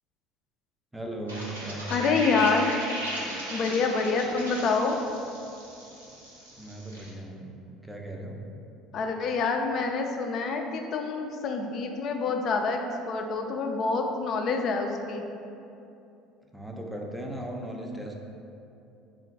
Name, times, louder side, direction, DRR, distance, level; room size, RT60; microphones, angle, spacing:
voice 1, 0.9-2.2 6.6-7.5 7.8-8.5 16.5-18.2, right 1 dB, 5° right, 0 dB, 0.6 m, -37 dB
sound 1, 1.3-7.1, right 1 dB, 85° right, 0.7 m, -37 dB
voice 2, 1.9-2.7 3.5-5.0 8.9-15.2, left 4 dB, 50° left, 3 dB, 0.4 m, -27 dB
3.6 x 2.5 x 4.5 m, 2.7 s
figure-of-eight pair, 65°, 0 cm